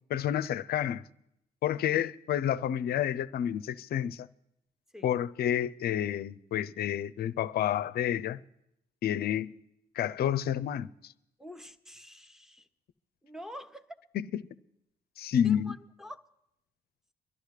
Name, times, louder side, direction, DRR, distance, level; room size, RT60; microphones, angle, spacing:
voice 1, 0.1-1.0 1.6-4.3 5.0-8.4 9.0-9.5 10.0-11.1 14.1-14.4 15.2-15.7, left 10 dB, 50° left, 0.5 m, -29 dB
voice 2, 1.7-2.1 4.9-5.1 11.4-12.7 13.2-13.9 15.4-16.2, equal, ahead, 1.1 m, -47 dB
23.5 x 13.0 x 3.3 m
hypercardioid pair, 45°, 20 cm